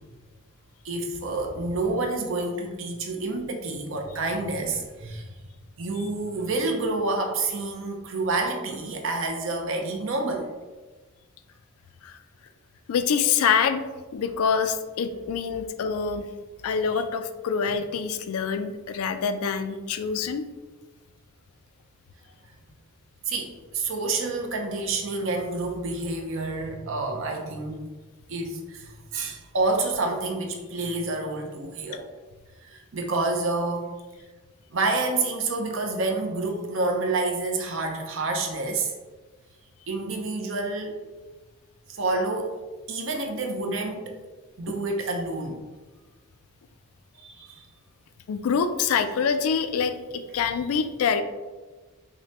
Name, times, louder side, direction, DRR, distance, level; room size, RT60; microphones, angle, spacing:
voice 1, 0.8-5.3 5.8-10.5 16.9-17.0 23.3-27.8 28.3-32.1 32.6-33.9 34.7-38.9 39.9-41.0 41.9-42.5 42.9-44.2 44.6-45.6 47.2-47.7, right 3 dB, 60° right, 3 dB, 0.6 m, -28 dB
voice 2, 12.9-13.8 14.1-16.2 16.6-20.5 48.3-51.2, left 6 dB, 75° left, 9 dB, 0.3 m, -25 dB
5.9 x 2.2 x 2.8 m, 1.3 s
head